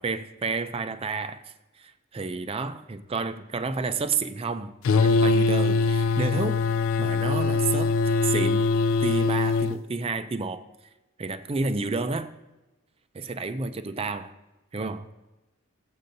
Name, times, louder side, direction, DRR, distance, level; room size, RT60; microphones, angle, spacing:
voice 1, 0.0-1.4 1.8-6.6 7.0-8.7 9.0-10.6 11.2-12.3 13.1-14.3 14.7-15.1, right 4 dB, 25° right, 0.4 m, -30 dB
sound 1, 4.8-9.8, left 4 dB, 60° left, 0.3 m, -22 dB
16.0 x 7.8 x 2.6 m
head